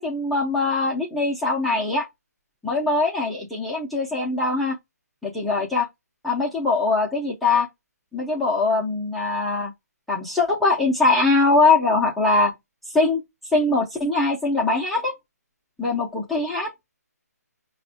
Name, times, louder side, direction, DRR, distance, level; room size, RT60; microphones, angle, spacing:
voice 1, 0.0-2.1 2.6-4.8 5.2-5.9 6.2-7.7 8.1-9.7 10.1-12.5 12.9-13.2 13.5-15.1 15.8-16.7, left 3 dB, ahead, 0.4 m, -22 dB
5.0 x 2.1 x 2.6 m
hypercardioid pair, 165°, 9 cm